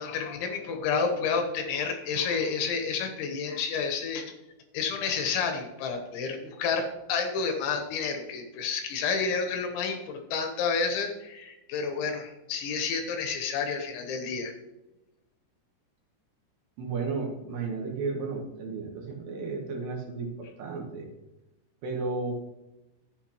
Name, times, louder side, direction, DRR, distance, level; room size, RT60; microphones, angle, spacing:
voice 1, 0.0-4.3 4.7-14.5, left 5 dB, 75° left, 4 dB, 3.3 m, -30 dB
voice 2, 16.8-21.1 21.8-22.3, right 4 dB, 70° right, 1 dB, 3.0 m, -33 dB
12.5 x 8.3 x 3.0 m, 0.96 s
omnidirectional pair, 5.6 m